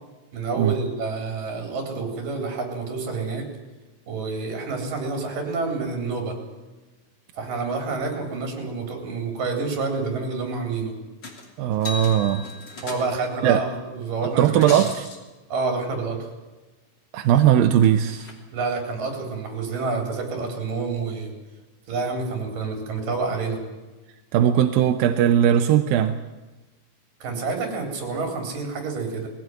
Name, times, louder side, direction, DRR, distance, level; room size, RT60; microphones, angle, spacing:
voice 1, 0.3-3.5 4.1-6.4 7.4-10.9 12.8-14.7 15.5-16.3 18.5-21.3 21.9-23.6 27.2-29.3, right 4 dB, 55° right, 3 dB, 5.4 m, -28 dB
sound 1, 11.2-11.5 11.7-13.4 14.4-15.2 17.4-17.5 17.8-18.3 19.3-19.4, left 3 dB, 30° left, 3.0 m, -36 dB
voice 2, 11.6-12.5 13.4-13.6 14.2-15.1 17.1-18.3 24.3-26.2, right 10 dB, 75° right, 7 dB, 2.4 m, -19 dB
20.5 x 16.5 x 9.3 m, 1.2 s
omnidirectional pair, 4.6 m